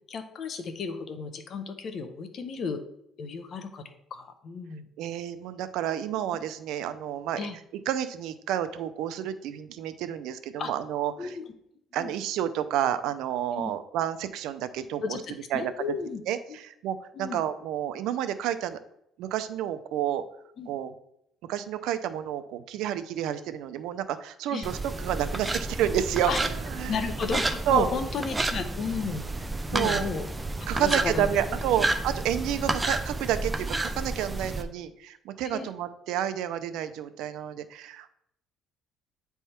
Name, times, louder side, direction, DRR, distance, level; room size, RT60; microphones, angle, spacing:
voice 1, 0.1-2.8 3.2-4.9 7.4-7.6 10.6-10.7 11.2-11.4 11.9-12.1 13.5-13.7 15.0-16.2 16.5-16.6 17.1-17.4 20.6-20.7 24.5-24.7 26.3-26.4 26.9-30.3 30.7-31.6 32.7-32.8 35.4-35.7, left 5 dB, 50° left, 8 dB, 0.8 m, -34 dB
voice 2, 5.0-7.4 7.9-11.3 11.9-15.0 15.5-15.7 16.3-18.8 19.2-20.2 20.7-20.9 21.4-26.9 27.7-27.9 29.7-30.1 30.7-38.1, right 10 dB, 80° right, 11 dB, 0.5 m, -30 dB
sound 1, 24.6-34.6, right 2 dB, 15° right, 0.5 m, -31 dB
9.3 x 3.5 x 4.3 m, 0.76 s
cardioid pair, 115°, 0 cm